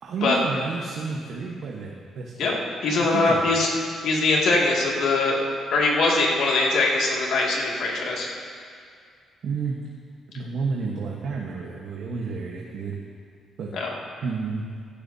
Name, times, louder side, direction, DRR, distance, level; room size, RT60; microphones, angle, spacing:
voice 1, 0.0-2.5 3.0-3.4 9.4-9.8 10.3-13.0 13.6-13.7 14.2-14.6, right 4 dB, 65° right, -2 dB, 1.2 m, -31 dB
voice 2, 2.8-3.7 4.0-5.4 5.7-8.3 13.7-13.9, left 3 dB, 75° left, -3 dB, 2.2 m, -22 dB
15.5 x 12.0 x 2.8 m, 2.1 s
cardioid pair, 90°, 0 cm